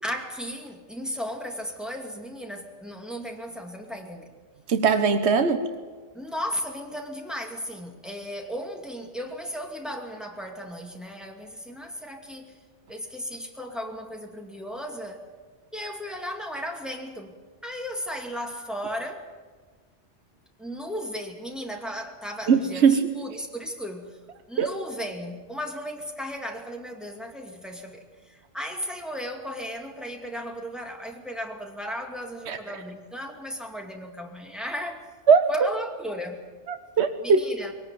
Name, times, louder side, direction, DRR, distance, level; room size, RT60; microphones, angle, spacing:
voice 1, 0.0-4.3 6.1-12.6 12.9-15.2 15.7-17.4 17.6-19.3 20.6-24.2 24.5-35.1 35.5-36.4 37.2-37.7, equal, ahead, 2 dB, 2.4 m, -35 dB
voice 2, 4.7-5.6 22.5-23.1 24.6-24.7 32.5-32.6 35.3-35.5 36.7-37.4, right 6 dB, 65° right, 8 dB, 1.4 m, -20 dB
21.5 x 18.0 x 9.4 m, 1.4 s
omnidirectional pair, 1.2 m